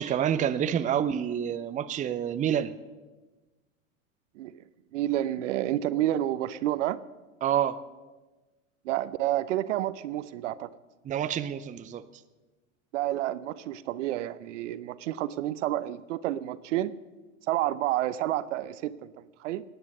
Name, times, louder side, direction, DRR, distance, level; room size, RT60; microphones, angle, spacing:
voice 1, 0.0-2.7 7.4-7.8 11.1-12.0, right 9 dB, 20° right, 13 dB, 0.6 m, -28 dB
voice 2, 4.9-7.0 8.8-10.7 12.9-16.9 17.5-19.6, right 13 dB, 65° right, 16 dB, 0.8 m, -29 dB
18.0 x 10.0 x 6.6 m, 1.2 s
hypercardioid pair, 100°, 39 cm